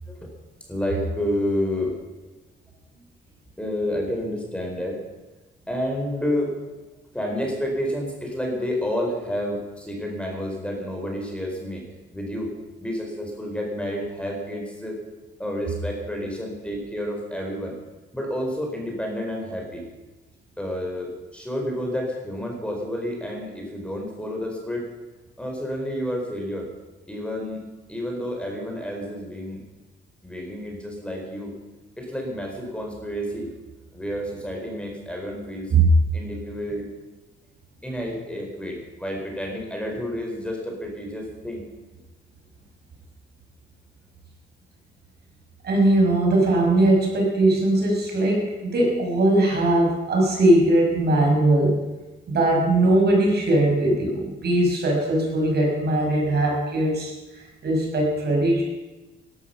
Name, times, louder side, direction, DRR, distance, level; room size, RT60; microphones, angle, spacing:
voice 1, 0.7-2.0 2.9-3.0 3.6-5.0 5.7-6.6 7.1-11.9 12.1-12.5 12.8-15.0 15.4-17.8 18.1-19.9 20.6-24.9 25.4-26.7 27.1-29.6 30.2-31.5 32.0-33.5 33.9-35.7 36.1-36.8 37.8-41.6, equal, 5° left, 0 dB, 4.5 m, -30 dB
voice 2, 45.6-51.8 52.3-58.6, right 2 dB, 55° right, 0 dB, 5.9 m, -20 dB
16.5 x 12.5 x 5.9 m, 1.1 s
cardioid pair, 90°, 20 cm